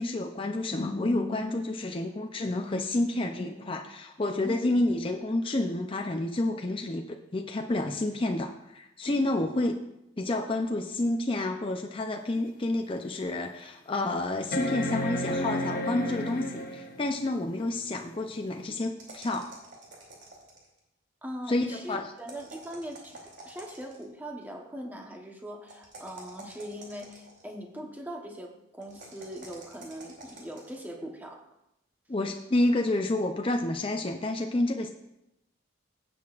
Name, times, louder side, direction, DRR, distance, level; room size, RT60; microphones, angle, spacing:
voice 1, 0.0-7.0 7.3-9.8 10.2-19.5 21.5-22.0 32.1-34.9, left 2 dB, 30° left, 3 dB, 0.5 m, -29 dB
sound 1, 12.4-12.5 13.0-13.1 14.5-17.0 18.7-18.8, left 1 dB, 45° left, 1.0 m, -31 dB
sound 2, 19.0-20.8 22.2-24.1 25.7-27.5 28.8-30.8, right 2 dB, 60° right, 2.8 m, -48 dB
voice 2, 21.2-31.5, equal, 10° right, 2 dB, 1.0 m, -40 dB
16.5 x 7.8 x 2.5 m, 0.89 s
head